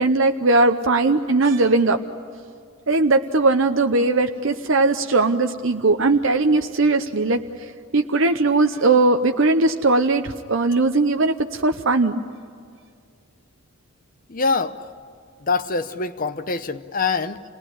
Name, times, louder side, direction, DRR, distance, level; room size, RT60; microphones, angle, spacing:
voice 1, 0.0-2.0 2.9-12.2, right 3 dB, 60° right, 6 dB, 0.8 m, -19 dB
voice 2, 14.3-14.8 15.5-17.4, left 4 dB, 40° left, 10 dB, 0.7 m, -24 dB
27.5 x 19.0 x 10.0 m, 2.3 s
head